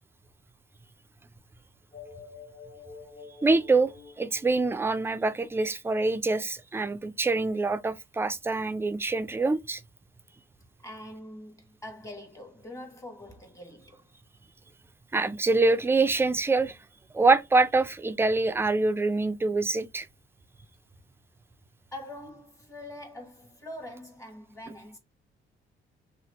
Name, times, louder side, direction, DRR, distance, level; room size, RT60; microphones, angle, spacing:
sound 1, 1.9-5.8, left 5 dB, 35° left, 0.9 m, -48 dB
voice 1, 3.4-3.9 4.2-9.8 15.1-16.8 17.1-20.1, right 3 dB, 10° right, 0.3 m, -25 dB
voice 2, 10.8-14.1 21.9-25.0, left 1 dB, 15° left, 1.2 m, -44 dB
2.9 x 2.4 x 2.9 m
cardioid pair, 90°, 20 cm